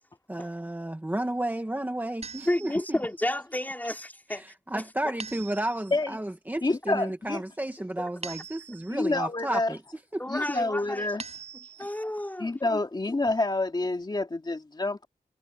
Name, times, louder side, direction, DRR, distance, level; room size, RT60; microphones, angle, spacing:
voice 1, 0.3-3.0 4.3-9.8 10.1-10.2, right 1 dB, 10° right, 1.5 m, -32 dB
sound 1, 2.2-3.1 5.2-6.1 8.2-9.1 11.2-12.1, right 5 dB, 45° right, 6.9 m, -43 dB
voice 2, 2.5-4.4 4.7-4.8 8.0-8.1 10.2-11.1 11.8-12.5, left 1 dB, 10° left, 3.8 m, -31 dB
voice 3, 6.6-7.4 8.9-9.7 10.3-11.2 12.4-15.1, left 2 dB, 30° left, 2.5 m, -28 dB
wide cardioid pair, 125°, 15 cm